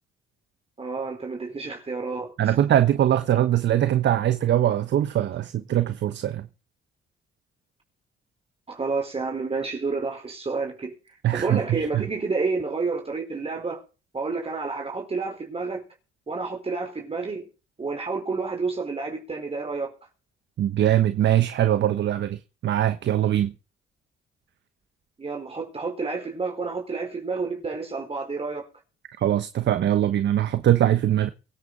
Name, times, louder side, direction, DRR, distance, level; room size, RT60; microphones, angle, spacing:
voice 1, 0.8-2.6 8.7-10.9 11.3-13.8 14.1-15.8 16.3-17.5 17.8-19.9 25.2-28.7, right 4 dB, 30° right, 4.5 m, -30 dB
voice 2, 2.4-6.5 11.2-12.0 20.6-23.5 29.2-31.3, right 11 dB, 65° right, 1.1 m, -22 dB
23.5 x 9.6 x 4.1 m
cardioid pair, 90°, 20 cm